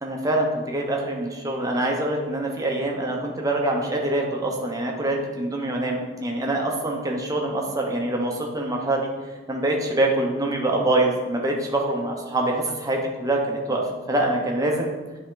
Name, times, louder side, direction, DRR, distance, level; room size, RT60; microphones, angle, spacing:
voice 1, 0.0-9.1 9.5-13.8 14.1-14.9, right 1 dB, 15° right, 0 dB, 1.0 m, -25 dB
9.8 x 3.8 x 3.9 m, 1.3 s
head